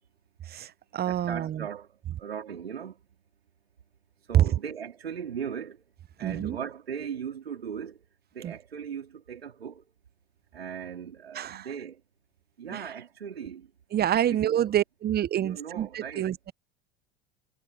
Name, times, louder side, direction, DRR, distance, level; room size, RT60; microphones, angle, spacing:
voice 1, 0.5-1.6 4.3-4.4 6.2-6.6 8.4-8.5 11.3-11.7 12.7-12.8 13.9-16.5, right 11 dB, 35° right, 1.0 m, -27 dB
voice 2, 1.0-1.9 2.2-3.0 4.3-5.8 6.2-8.0 8.3-9.9 10.5-12.0 12.6-13.7 14.2-14.7 15.4-16.3, right 7 dB, 85° right, 3.8 m, -38 dB
hypercardioid pair, 75°, 30 cm